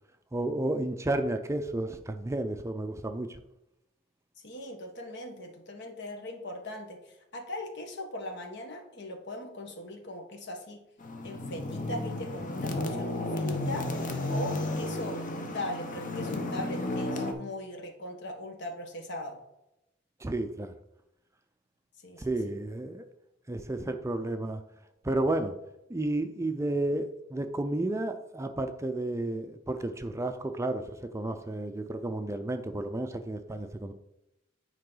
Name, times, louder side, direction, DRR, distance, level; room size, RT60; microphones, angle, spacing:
voice 1, 0.3-3.4 20.2-20.7 22.2-23.1 23.5-24.6 25.0-25.6 25.9-33.9, right 2 dB, 15° right, 8 dB, 0.4 m, -32 dB
voice 2, 4.4-10.8 11.2-13.9 14.3-19.4 22.0-22.3, left 1 dB, 60° left, 4 dB, 1.4 m, -39 dB
sound 1, 11.0-17.3, left 2 dB, 40° left, 0.9 m, -33 dB
9.5 x 4.7 x 3.9 m, 0.87 s
head